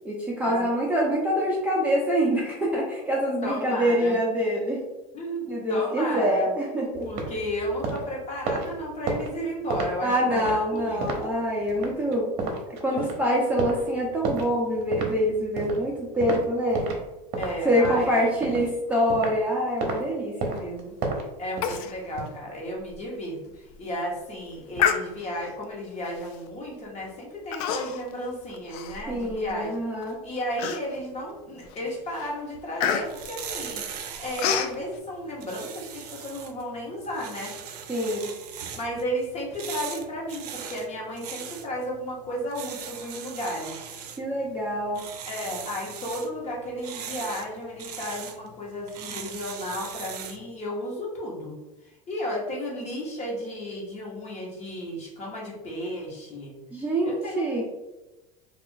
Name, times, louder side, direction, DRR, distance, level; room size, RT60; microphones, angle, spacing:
voice 1, 0.0-4.8 5.5-7.1 10.0-12.3 12.8-16.9 17.6-21.0 29.1-30.2 37.9-38.3 44.2-45.0 56.7-57.6, equal, 5° right, -4 dB, 0.6 m, -25 dB
voice 2, 3.4-4.2 5.1-6.5 7.0-11.0 12.9-13.1 17.4-18.2 21.4-23.4 23.8-29.8 30.2-37.5 38.8-43.9 45.2-51.6 52.1-56.5 57.0-57.6, equal, 35° left, -2 dB, 1.1 m, -33 dB
sound 1, 6.9-17.1 17.3-19.4 19.8-20.0 20.4-22.2, right 3 dB, 55° right, 0.8 m, -32 dB
Human voice, 21.6-21.9 22.3-22.4 22.9-23.0 23.5-23.8 24.8-25.5 26.2-26.5 27.5-28.1 28.5-29.5 30.0-30.1 30.6-31.2 31.6-31.9 32.1-34.7, left 8 dB, 65° left, 0.4 m, -28 dB
sound 2, 32.8-50.5, right 7 dB, 85° right, 0.5 m, -40 dB
2.4 x 2.4 x 3.7 m, 1.0 s
supercardioid pair, 105°, 20 cm